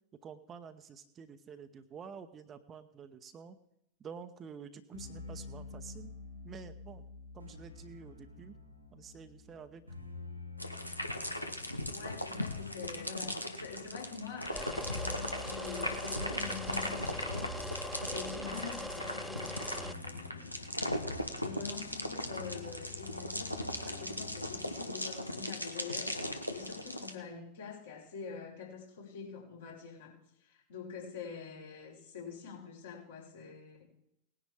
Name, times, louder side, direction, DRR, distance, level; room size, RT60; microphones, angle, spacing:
voice 1, 0.2-3.6 4.0-6.1 6.4-7.0 7.3-8.5 8.9-9.8, right 6 dB, 25° right, 9 dB, 0.9 m, -49 dB
sound 1, 4.9-24.7, left 3 dB, 90° right, 2.3 m, -48 dB
sound 2, 10.6-27.1, left 1 dB, 85° left, 1.1 m, -38 dB
voice 2, 11.9-20.7 21.4-30.1 30.4-33.8, left 6 dB, 65° left, -3 dB, 4.9 m, -46 dB
sound 3, 14.5-19.9, equal, ahead, 0.4 m, -42 dB
19.0 x 10.5 x 3.6 m, 0.77 s
figure-of-eight pair, 90°, 0 cm